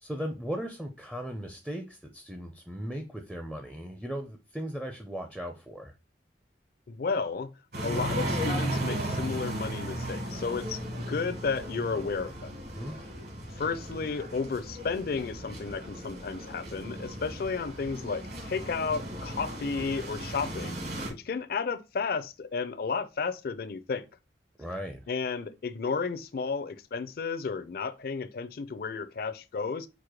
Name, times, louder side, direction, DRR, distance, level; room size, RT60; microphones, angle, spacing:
voice 1, 0.0-5.9 12.7-13.0 24.6-25.0, equal, 5° right, 0.4 m, -37 dB
voice 2, 6.9-7.5 7.8-12.5 13.6-20.8 21.1-24.1 25.1-29.9, left 5 dB, 55° left, 0.4 m, -33 dB
sound 1, 7.7-21.1, right 1 dB, 60° right, 1.6 m, -36 dB
4.7 x 2.1 x 4.7 m
head